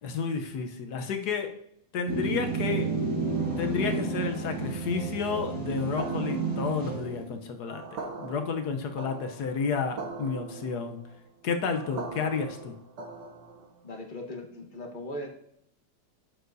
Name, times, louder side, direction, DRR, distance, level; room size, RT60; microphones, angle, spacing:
voice 1, 0.0-1.6 1.9-2.9 3.6-11.0 11.4-12.8, left 5 dB, 65° left, 6 dB, 1.3 m, -31 dB
sound 1, 2.1-7.3, right 4 dB, 55° right, 2.3 m, -31 dB
sound 2, 6.0-13.8, right 4 dB, 75° right, 1.5 m, -41 dB
voice 2, 13.8-15.3, left 1 dB, 30° left, 3 dB, 1.1 m, -38 dB
10.0 x 7.1 x 2.7 m, 0.74 s
omnidirectional pair, 1.9 m